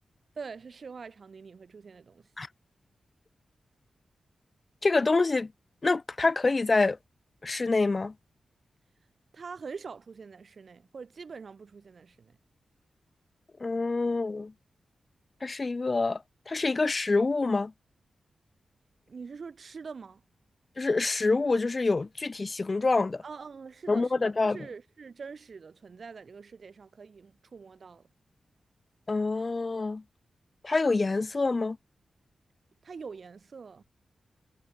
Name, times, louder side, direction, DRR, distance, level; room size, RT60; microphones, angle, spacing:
voice 1, 0.4-2.2 9.3-12.3 19.1-20.2 23.2-28.0 32.8-33.8, right 5 dB, 45° right, 7.5 m, -44 dB
voice 2, 4.8-5.5 5.8-7.0 7.4-8.1 13.6-14.5 15.4-17.7 20.8-23.2 23.9-24.6 29.1-30.0 30.6-31.8, left 3 dB, 25° left, 0.7 m, -26 dB
wide cardioid pair, 170°, 0 cm